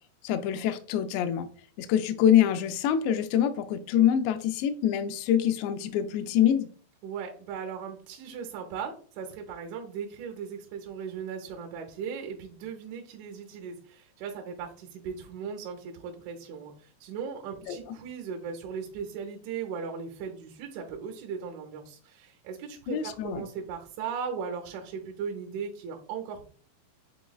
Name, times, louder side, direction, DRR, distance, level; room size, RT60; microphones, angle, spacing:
voice 1, 0.2-1.5 1.8-6.7 17.7-17.8 22.9-23.4, left 10 dB, 90° left, 2.4 m, -25 dB
voice 2, 7.0-26.5, right 6 dB, 80° right, 3.1 m, -38 dB
7.3 x 3.0 x 2.3 m
omnidirectional pair, 5.4 m